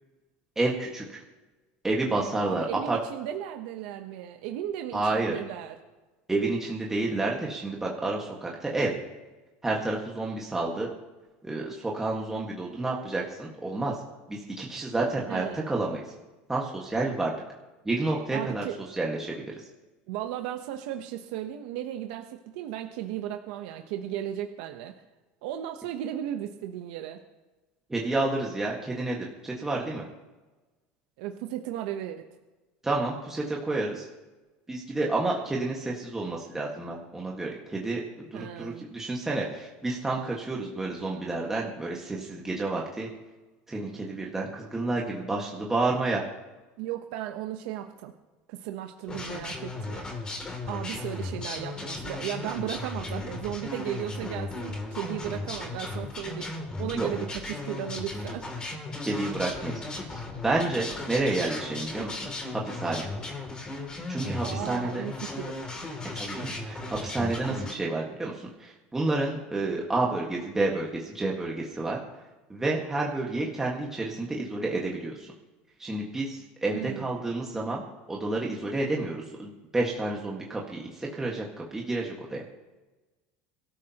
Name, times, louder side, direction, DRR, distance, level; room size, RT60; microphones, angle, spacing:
voice 1, 0.5-1.2 1.8-3.0 4.9-5.3 6.3-9.0 9.6-10.9 11.4-14.0 14.3-16.0 16.5-17.4 17.8-18.6 19.0-19.4 27.9-30.1 32.8-34.1 34.7-43.1 43.7-46.2 56.9-57.1 59.0-59.8 60.1-62.2 62.6-63.1 64.1-65.0 66.1-72.0 72.5-75.3 75.8-77.8 78.1-81.4 81.7-82.4, right 2 dB, 10° right, -2 dB, 1.7 m, -30 dB
voice 2, 2.4-5.8 15.3-15.7 18.3-18.8 20.1-24.9 25.4-27.2 31.2-32.3 38.3-38.8 46.8-48.1 48.5-50.1 50.7-58.5 64.4-65.5 76.7-77.2, right 11 dB, 75° right, 5 dB, 0.9 m, -35 dB
sound 1, 49.1-67.7, left 2 dB, 20° left, 2.8 m, -36 dB
23.5 x 13.0 x 3.0 m, 1.2 s
supercardioid pair, 140°, 4 cm